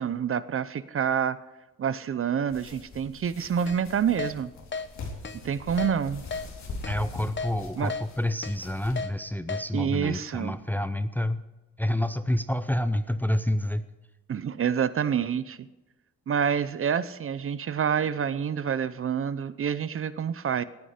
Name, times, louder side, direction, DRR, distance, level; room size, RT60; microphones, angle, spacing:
voice 1, 0.0-1.4 1.8-4.5 5.4-6.2 7.8-7.9 9.7-10.5 14.3-15.7 16.3-20.6, right 7 dB, 40° right, 16 dB, 0.7 m, -27 dB
sound 1, 2.5-9.0, left 3 dB, 60° left, 3.9 m, -42 dB
Keyboard (musical), 3.7-3.8 4.2-4.3 4.7-4.9 5.2-5.4 5.8-5.9 6.3-6.4 6.8-7.0 7.4-7.5 7.9-8.0 8.4-8.6 9.0-9.1 9.5-9.6, left 4 dB, 35° left, 1.1 m, -33 dB
voice 2, 6.9-11.4 11.8-13.8, left 1 dB, 5° left, 12 dB, 0.6 m, -28 dB
18.5 x 9.8 x 5.0 m, 1.1 s
wide cardioid pair, 145°, 32 cm